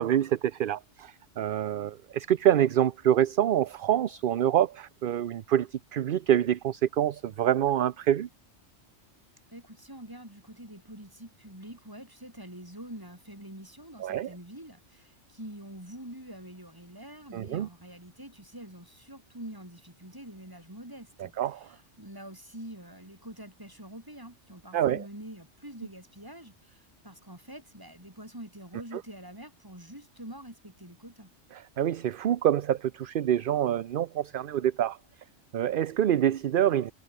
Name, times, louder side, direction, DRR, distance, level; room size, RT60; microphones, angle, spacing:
voice 1, 0.0-8.3 14.0-14.3 17.3-17.7 21.4-21.7 24.7-25.0 28.9-29.0 31.5-35.0 35.5-36.9, right 10 dB, 55° right, 0.7 m, -26 dB
voice 2, 9.5-31.3, right 1 dB, 15° right, 5.0 m, -46 dB
omnidirectional pair, 1.2 m